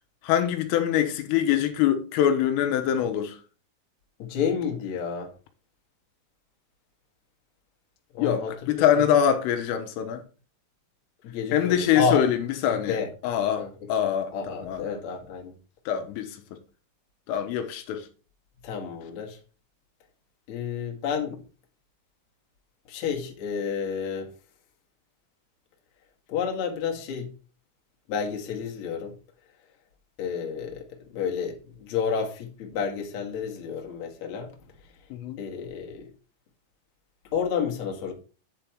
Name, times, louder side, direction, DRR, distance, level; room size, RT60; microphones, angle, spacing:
voice 1, 0.2-3.4 8.2-10.2 11.5-13.0 13.2-14.8 15.9-16.4 17.3-18.1 35.1-35.4, left 10 dB, 85° left, 3.6 m, -24 dB
voice 2, 4.2-5.3 8.1-9.0 11.2-12.2 12.7-13.1 13.6-13.7 14.3-15.6 18.6-19.4 20.5-21.4 22.9-24.3 26.3-27.3 28.1-29.2 30.2-34.5 35.4-36.1 37.3-38.1, left 6 dB, 50° left, 2.2 m, -30 dB
10.0 x 5.1 x 4.5 m
omnidirectional pair, 5.8 m